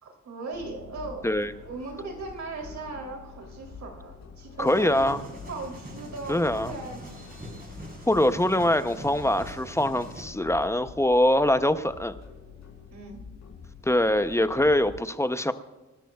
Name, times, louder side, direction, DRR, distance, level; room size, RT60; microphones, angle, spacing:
voice 1, 0.0-1.3 1.6-5.1 5.4-7.6 12.9-13.2, right 3 dB, 70° right, 1 dB, 3.2 m, -38 dB
sound 1, 0.5-15.0, left 6 dB, 70° left, 3.6 m, -46 dB
voice 2, 4.6-5.2 6.3-6.7 8.1-12.2 13.8-15.5, left 1 dB, 10° left, 10 dB, 0.7 m, -23 dB
sound 2, 4.6-10.2, equal, 30° right, 4.3 m, -43 dB
26.0 x 13.0 x 2.4 m, 1.2 s
wide cardioid pair, 105°, 29 cm